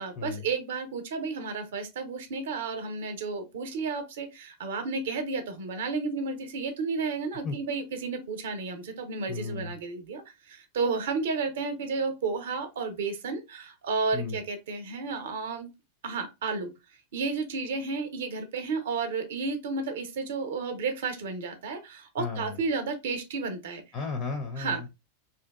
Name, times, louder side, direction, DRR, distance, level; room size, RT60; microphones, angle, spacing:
voice 1, 0.0-10.2 10.5-15.7 16.0-16.7 17.1-23.8 24.6-24.8, right 4 dB, 60° right, 7 dB, 0.6 m, -32 dB
voice 2, 9.3-9.7 14.1-14.4 22.2-22.6 23.9-24.9, left 4 dB, 35° left, 5 dB, 0.4 m, -34 dB
2.6 x 2.2 x 2.2 m, 0.24 s
figure-of-eight pair, 90°, 0 cm